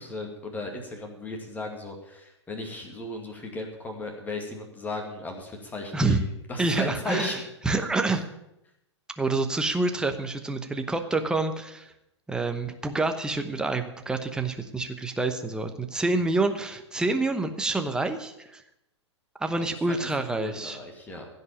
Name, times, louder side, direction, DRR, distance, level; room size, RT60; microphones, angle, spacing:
voice 1, 0.0-7.8 19.6-21.3, left 2 dB, 10° left, 2 dB, 2.2 m, -36 dB
voice 2, 6.6-7.4 7.7-8.2 9.2-11.9 12.3-18.6 19.4-20.8, right 3 dB, 5° right, 7 dB, 0.9 m, -27 dB
15.5 x 5.5 x 8.7 m, 0.83 s
figure-of-eight pair, 110°, 15 cm